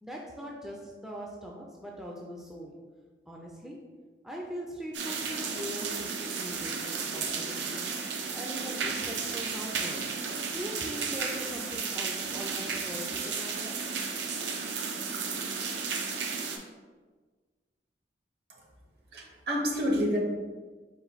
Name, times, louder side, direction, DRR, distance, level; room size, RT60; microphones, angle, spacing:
voice 1, 0.0-2.7 3.3-3.8 4.2-7.9 8.3-10.0 10.5-13.7, equal, 5° right, -2 dB, 0.3 m, -41 dB
sound 1, 4.9-16.6, right 5 dB, 85° right, 0.5 m, -33 dB
voice 2, 19.1-20.2, equal, 65° right, -1 dB, 0.8 m, -29 dB
4.3 x 2.5 x 3.9 m, 1.4 s
head